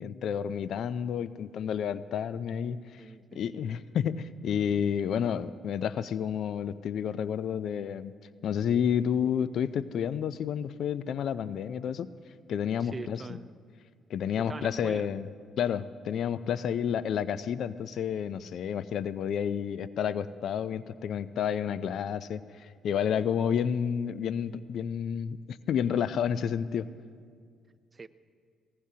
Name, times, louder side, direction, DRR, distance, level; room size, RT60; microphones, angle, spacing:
voice 1, 0.0-3.0 3.3-8.1 8.4-12.1 12.5-13.2 14.1-15.3 15.6-26.9, left 8 dB, 70° left, 15 dB, 0.4 m, -30 dB
voice 2, 3.0-3.5 12.8-13.5 14.4-15.1 23.4-23.6 27.9-28.1, right 4 dB, 30° right, 13 dB, 0.5 m, -43 dB
21.0 x 18.5 x 2.8 m, 2.1 s
cardioid pair, 90°, 0 cm